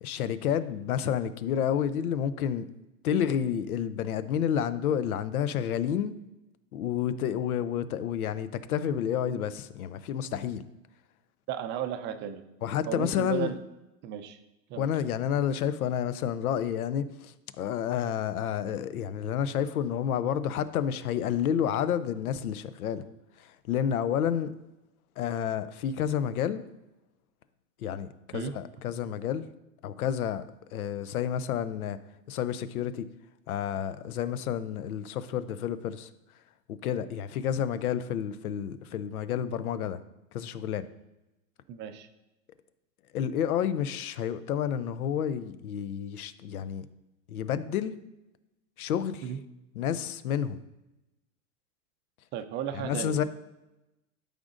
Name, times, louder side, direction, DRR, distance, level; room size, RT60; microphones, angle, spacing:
voice 1, 0.0-2.7 3.0-6.1 6.7-10.6 12.6-13.5 14.8-23.0 23.4-24.5 25.2-26.6 27.8-29.4 29.8-30.4 30.7-32.0 32.3-33.1 33.5-36.1 36.8-40.0 40.3-40.9 43.1-46.9 47.3-47.9 48.8-49.3 49.8-50.6 52.7-53.2, left 9 dB, 80° left, 0.7 m, -30 dB
voice 2, 11.5-12.4 12.9-13.6 14.0-14.4 14.7-14.9 28.3-28.5 41.7-42.1 49.2-49.4 52.3-53.2, right 9 dB, 25° right, 0.5 m, -34 dB
12.5 x 5.1 x 2.5 m
hypercardioid pair, 120°, 43 cm